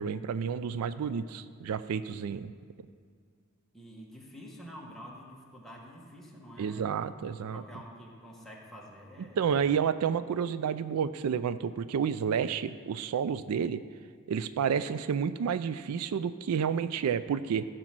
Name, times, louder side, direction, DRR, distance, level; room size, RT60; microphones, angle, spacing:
voice 1, 0.0-2.5 6.6-7.6 9.4-13.8 14.3-17.6, right 7 dB, 80° right, 14 dB, 0.4 m, -30 dB
voice 2, 1.0-1.3 2.1-2.2 3.7-7.1 7.5-9.6, equal, ahead, -3 dB, 1.5 m, -48 dB
15.0 x 5.0 x 6.0 m, 2.1 s
head